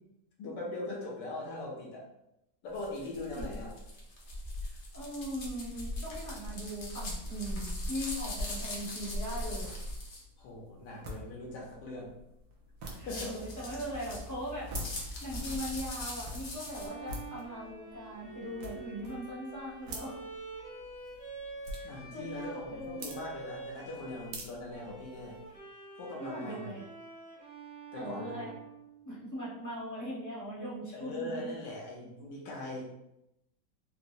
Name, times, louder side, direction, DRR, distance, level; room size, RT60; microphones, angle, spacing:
voice 1, 0.4-2.0 2.6-3.7 10.4-12.1 13.1-13.4 21.8-25.4 26.0-26.8 27.9-28.5 30.9-32.9, left 2 dB, 80° left, -2 dB, 1.4 m, -41 dB
sound 1, 2.7-10.2 12.9-16.9, left 1 dB, 55° left, 0.8 m, -40 dB
voice 2, 4.6-9.7 13.0-14.7 15.0-20.2 22.1-23.1 26.2-26.9 27.9-28.5 29.0-31.7, equal, 15° left, -9 dB, 0.7 m, -40 dB
sound 2, 9.3-25.6, equal, 75° right, 1.2 m, -48 dB
Bowed string instrument, 16.5-24.4 24.7-29.5, right 3 dB, 20° right, 0.5 m, -47 dB
3.9 x 2.0 x 2.6 m, 0.85 s
omnidirectional pair, 1.9 m